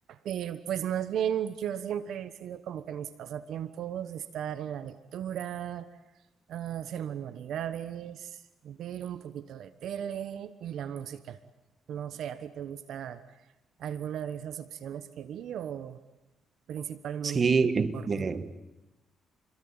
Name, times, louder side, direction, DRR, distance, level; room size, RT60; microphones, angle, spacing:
voice 1, 0.1-5.9 6.5-8.4 8.6-11.4 11.9-13.2 13.8-16.0 16.7-17.4 17.9-18.3, right 9 dB, 75° right, 13 dB, 1.1 m, -36 dB
voice 2, 17.2-18.5, right 5 dB, 40° right, 12 dB, 1.7 m, -26 dB
29.5 x 22.5 x 8.8 m, 0.99 s
cardioid pair, 90°, 0 cm